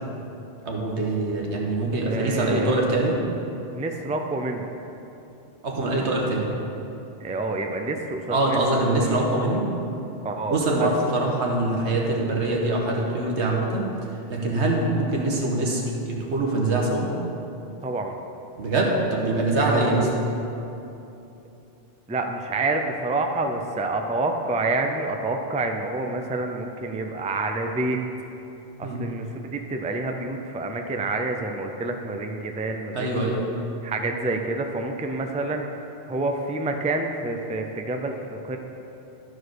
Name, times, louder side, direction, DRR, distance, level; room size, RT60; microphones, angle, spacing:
voice 1, 0.7-3.1 5.6-6.5 8.3-9.6 10.5-13.8 14.3-17.1 18.6-20.1 28.8-29.0 32.9-33.5, right 2 dB, 90° right, -1 dB, 1.6 m, -24 dB
voice 2, 2.0-2.9 3.7-4.7 7.2-9.3 10.2-10.9 17.8-18.1 19.6-20.2 22.1-28.0 28.8-33.4 33.8-35.6 36.1-38.6, right 2 dB, 10° right, 4 dB, 0.3 m, -28 dB
12.0 x 4.8 x 6.3 m, 2.9 s
omnidirectional pair, 1.1 m